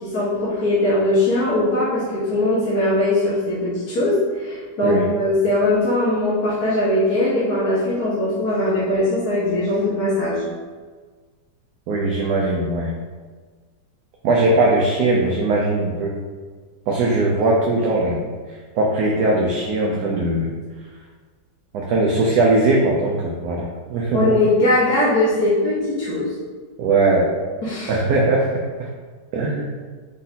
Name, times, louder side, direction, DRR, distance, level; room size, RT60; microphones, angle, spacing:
voice 1, 0.0-10.4 24.1-26.3 27.6-28.0, left 1 dB, 55° left, -9 dB, 1.5 m, -20 dB
voice 2, 11.9-12.9 14.2-16.1 16.9-18.2 18.8-20.5 21.7-24.2 26.8-27.3 27.9-28.5 29.3-29.6, right 2 dB, 70° right, -2 dB, 1.1 m, -19 dB
4.8 x 3.9 x 2.8 m, 1.5 s
omnidirectional pair, 2.0 m